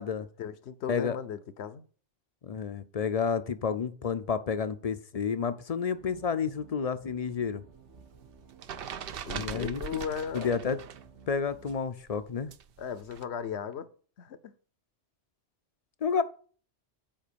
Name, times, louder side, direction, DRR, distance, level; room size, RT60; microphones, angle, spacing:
voice 1, 0.4-1.8 9.3-10.8 12.8-13.9 14.2-14.5, left 7 dB, 70° left, 1.0 m, -37 dB
voice 2, 2.4-7.6 9.3-10.0 10.3-10.8 11.3-12.5 16.0-16.2, left 6 dB, 45° left, 0.5 m, -30 dB
sound 1, 5.9-11.8, right 6 dB, 75° right, 1.8 m, -55 dB
sound 2, 7.7-11.1 11.3-13.2, right 8 dB, 60° right, 0.8 m, -41 dB
7.8 x 5.2 x 6.8 m
omnidirectional pair, 1.2 m